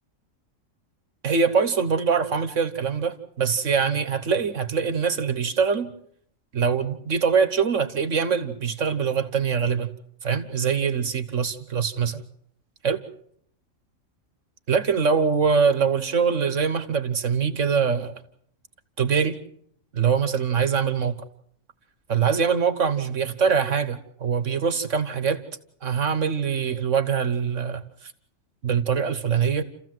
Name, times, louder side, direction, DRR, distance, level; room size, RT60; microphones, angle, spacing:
voice 1, 1.2-5.9 6.5-9.9 10.2-12.2 12.8-13.0 14.7-18.2 19.0-19.4 19.9-21.2 22.1-25.4 25.8-28.1 28.6-29.6, right 6 dB, 70° right, 12 dB, 1.6 m, -23 dB
29.5 x 15.0 x 7.8 m, 0.68 s
omnidirectional pair, 1.3 m